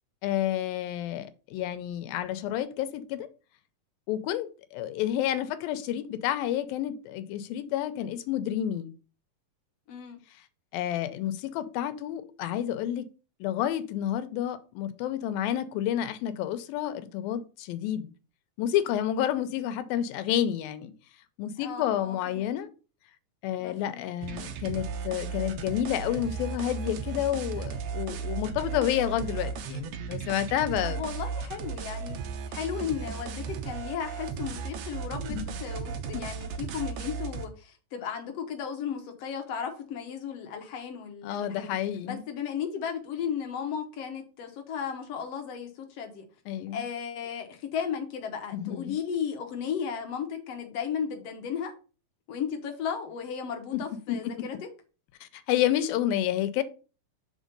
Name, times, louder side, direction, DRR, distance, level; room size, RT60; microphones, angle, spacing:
voice 1, 0.2-3.3 4.1-8.9 10.7-13.0 13.4-18.1 18.6-20.9 21.4-22.7 23.4-31.0 35.3-35.5 36.1-36.2 41.2-42.2 46.5-46.9 48.5-49.0 53.7-53.8 54.1-54.2 55.2-56.6, left 11 dB, 85° left, 2.5 m, -30 dB
voice 2, 9.9-10.2 21.6-22.5 23.6-24.0 30.8-32.2 32.5-41.7 42.0-46.2 46.7-51.7 52.3-54.6, left 7 dB, 65° left, 1.6 m, -35 dB
sound 1, 24.2-37.5, right 6 dB, 80° right, 1.5 m, -35 dB
6.3 x 4.4 x 5.2 m
omnidirectional pair, 4.1 m